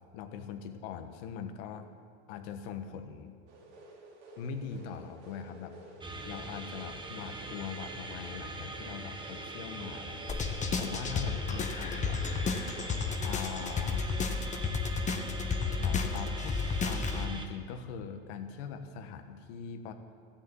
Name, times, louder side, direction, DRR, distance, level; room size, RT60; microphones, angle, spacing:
voice 1, 0.1-1.9 2.3-3.4 4.4-5.8 6.2-12.2 13.2-14.1 15.7-16.6 16.8-19.9, left 7 dB, 65° left, 7 dB, 1.4 m, -41 dB
sound 1, 3.5-13.2, right 2 dB, 85° right, 2.9 m, -51 dB
sound 2, 6.0-17.5, right 2 dB, 15° right, 1.4 m, -42 dB
sound 3, 10.3-17.2, left 5 dB, 20° left, 1.3 m, -32 dB
14.5 x 7.2 x 9.1 m, 2.1 s
hypercardioid pair, 105°, 33 cm